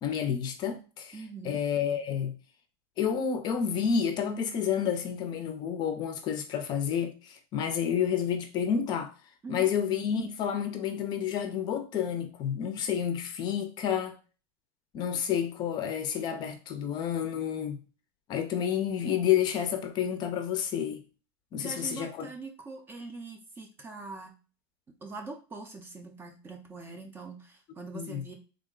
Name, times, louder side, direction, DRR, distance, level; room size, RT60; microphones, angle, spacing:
voice 1, 0.0-1.2 1.4-2.4 3.0-9.1 9.5-14.2 14.9-17.8 18.3-21.0 21.5-22.3 27.9-28.2, left 8 dB, 35° left, 0.6 m, -30 dB
voice 2, 1.1-1.6 9.4-9.7 21.6-24.3 25.0-28.3, right 3 dB, 15° right, 0.6 m, -43 dB
3.5 x 2.1 x 3.7 m
supercardioid pair, 155°, 13 cm